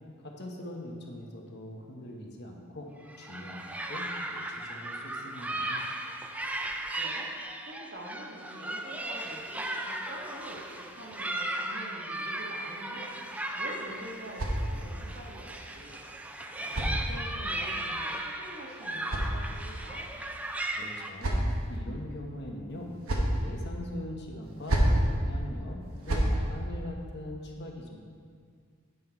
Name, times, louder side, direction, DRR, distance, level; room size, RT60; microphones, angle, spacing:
voice 1, 0.2-2.9 3.2-5.8 20.7-21.4 21.7-22.9 23.4-28.0, left 1 dB, 50° left, 0 dB, 1.0 m, -42 dB
sound 1, 3.1-21.1, right 1 dB, 5° right, 0.3 m, -36 dB
voice 2, 6.6-10.6 10.9-16.2 16.5-20.0, right 1 dB, 50° right, -2 dB, 1.3 m, -46 dB
sound 2, 13.5-15.1 16.1-17.6 18.6-19.9 20.7-21.8 22.7-23.4 24.4-25.1 25.8-26.4, right 1 dB, 85° right, 1.2 m, -31 dB
9.1 x 5.9 x 4.5 m, 2.1 s
head